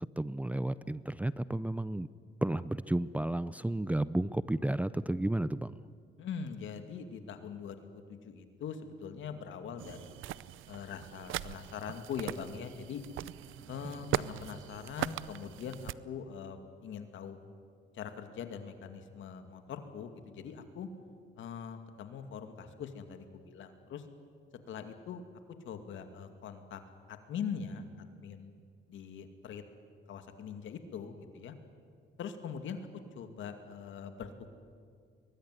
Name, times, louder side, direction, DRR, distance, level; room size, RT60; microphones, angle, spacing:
voice 1, 0.2-2.1 2.4-5.8, right 1 dB, 5° right, 15 dB, 0.5 m, -32 dB
voice 2, 6.2-10.2 10.7-13.0 13.7-17.4 17.9-20.9 21.4-24.0 24.7-25.2 25.6-26.8 27.1-28.5 28.9-29.6 30.1-31.5 32.2-32.9 33.2-34.3, left 7 dB, 75° left, 7 dB, 2.4 m, -42 dB
sound 1, 9.8-15.9, right 14 dB, 85° right, 0.6 m, -40 dB
23.0 x 20.0 x 9.7 m, 2.1 s
cardioid pair, 90°, 20 cm